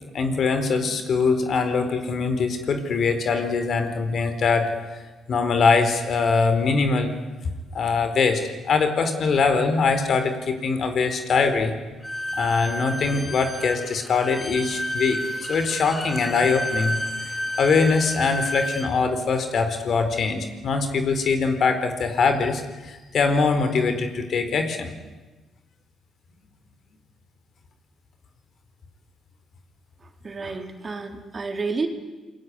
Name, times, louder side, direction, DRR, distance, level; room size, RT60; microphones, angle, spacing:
voice 1, 0.1-4.7 5.3-7.1 7.7-8.4 8.7-11.7 12.4-15.2 15.5-17.0 17.6-24.9, left 4 dB, 55° left, 8 dB, 4.3 m, -22 dB
Bowed string instrument, 12.0-18.9, equal, 10° left, 4.7 m, -31 dB
voice 2, 30.2-31.9, right 4 dB, 35° right, 5 dB, 3.7 m, -30 dB
28.0 x 22.0 x 9.7 m, 1.2 s
cardioid pair, 90°, 0 cm